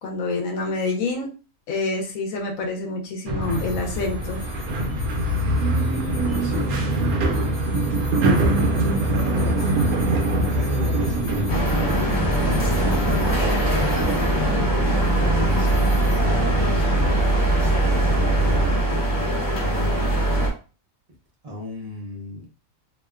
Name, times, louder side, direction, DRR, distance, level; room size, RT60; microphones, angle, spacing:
voice 1, 0.0-1.3 1.7-4.4, left 3 dB, 75° left, 1 dB, 1.0 m, -27 dB
sound 1, 3.2-18.8, right 1 dB, 85° right, 1.1 m, -24 dB
sound 2, 3.4-14.5 15.5-16.2, left 3 dB, 50° left, 1.1 m, -45 dB
voice 2, 6.4-7.8 8.2-9.7 10.4-13.1 14.1-17.0 18.0-18.7 19.6-20.1 21.4-22.5, left 2 dB, 55° right, -1 dB, 0.4 m, -33 dB
sound 3, 11.5-20.5, right 1 dB, 20° left, 0.5 m, -21 dB
2.8 x 2.1 x 2.3 m, 0.34 s
omnidirectional pair, 1.5 m